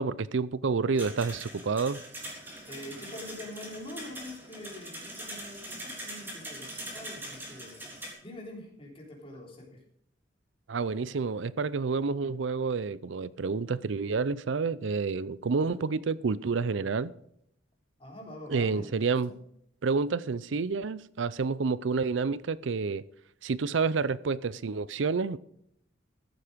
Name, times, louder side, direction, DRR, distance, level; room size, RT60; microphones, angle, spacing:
voice 1, 0.0-2.0 10.7-17.1 18.5-19.3 19.8-23.0 23.4-25.4, right 4 dB, 80° right, 0.5 m, -29 dB
sound 1, 1.0-8.1, right 1 dB, 10° right, 3.2 m, -42 dB
voice 2, 2.7-7.9 8.2-9.8 18.0-19.4, left 1 dB, 30° left, 3.6 m, -45 dB
14.5 x 8.2 x 5.1 m
head